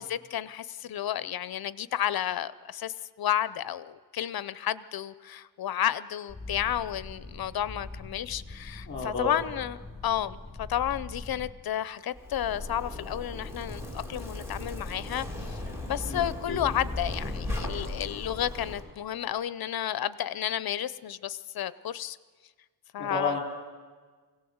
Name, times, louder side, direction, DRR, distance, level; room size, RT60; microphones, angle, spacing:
voice 1, 0.0-15.3 15.9-22.2 22.9-23.4, left 11 dB, 60° left, 17 dB, 0.7 m, -32 dB
sound 1, 6.3-11.5, left 2 dB, 10° left, 2.9 m, -43 dB
voice 2, 8.9-9.3 16.1-16.8 23.0-23.4, left 3 dB, 30° left, -1 dB, 4.2 m, -32 dB
Zipper (clothing), 12.1-18.8, left 2 dB, 5° right, 2.7 m, -36 dB
23.0 x 17.0 x 7.9 m, 1.5 s
wide cardioid pair, 165°, 41 cm